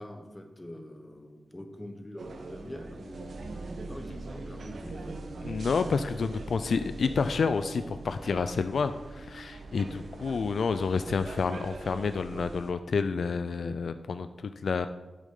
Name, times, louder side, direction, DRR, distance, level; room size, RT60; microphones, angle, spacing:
voice 1, 0.0-3.4 3.9-5.1, left 1 dB, 15° left, 6 dB, 0.9 m, -44 dB
sound 1, 2.2-12.7, right 3 dB, 75° right, 0.9 m, -42 dB
voice 2, 5.4-14.9, left 5 dB, 70° left, 11 dB, 0.3 m, -29 dB
8.9 x 8.5 x 3.7 m, 1.2 s
wide cardioid pair, 150°, 0 cm